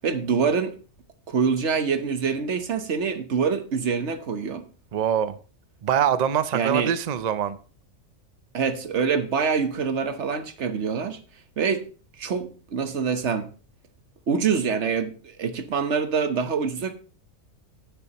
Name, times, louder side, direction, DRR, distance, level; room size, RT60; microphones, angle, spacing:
voice 1, 0.0-0.8 1.3-4.6 6.5-6.9 8.5-11.2 11.6-11.9 12.2-13.5 14.3-16.9, right 6 dB, 55° right, 1.3 m, -25 dB
voice 2, 4.9-5.4 5.8-7.6, right 9 dB, 90° right, 0.3 m, -24 dB
15.5 x 6.9 x 3.0 m
omnidirectional pair, 1.6 m